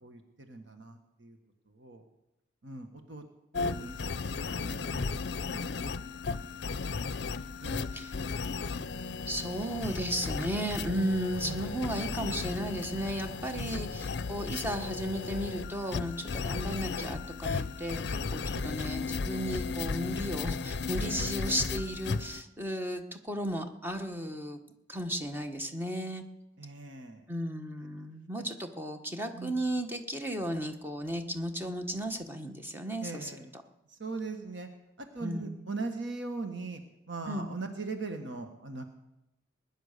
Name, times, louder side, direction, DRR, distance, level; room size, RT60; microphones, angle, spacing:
voice 1, 0.0-1.4 1.7-2.0 2.6-3.2 3.5-6.0 6.4-6.6 7.6-8.1 11.4-11.8 13.5-14.0 16.5-16.7 18.5-18.9 21.0-21.3 26.6-27.2 29.3-29.6 33.0-33.5 33.9-34.7 35.0-36.8 37.1-38.9, right 3 dB, 70° right, 6 dB, 1.5 m, -41 dB
sound 1, 3.5-22.4, left 4 dB, 60° left, 0.5 m, -35 dB
voice 2, 9.2-24.6 24.9-26.2 27.3-33.3 35.2-35.6 37.3-37.5, equal, 10° right, 5 dB, 1.2 m, -34 dB
20.5 x 10.0 x 6.7 m, 0.91 s
head